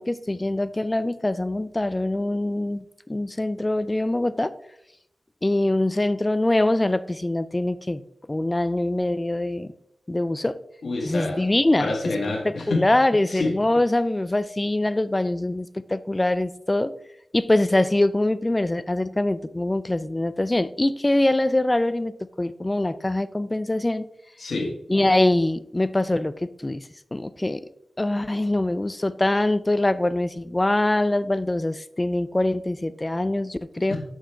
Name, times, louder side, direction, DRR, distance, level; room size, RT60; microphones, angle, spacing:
voice 1, 0.0-4.5 5.4-8.0 8.3-9.7 10.1-10.6 11.0-11.9 12.4-16.9 17.3-24.0 24.9-27.6 28.0-34.0, left 1 dB, 25° left, 15 dB, 0.4 m, -23 dB
voice 2, 10.8-11.4 11.8-12.9 13.3-13.5 24.4-24.7 33.9-34.0, left 2 dB, 85° left, 1 dB, 1.5 m, -27 dB
6.2 x 5.6 x 3.4 m, 0.77 s
cardioid pair, 50°, 0 cm